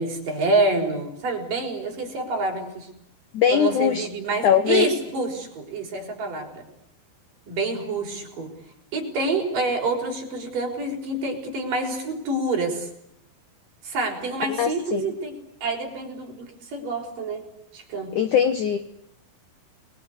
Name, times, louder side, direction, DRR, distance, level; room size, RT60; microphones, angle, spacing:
voice 1, 0.0-2.9 3.5-6.7 7.5-8.5 8.9-12.9 13.8-15.3 15.6-17.4 17.7-18.1, right 3 dB, 45° right, 1 dB, 7.0 m, -27 dB
voice 2, 3.3-4.1 4.4-4.9 14.5-15.1 18.1-18.8, left 9 dB, 80° left, 10 dB, 1.7 m, -21 dB
30.0 x 22.5 x 8.3 m, 0.77 s
omnidirectional pair, 5.3 m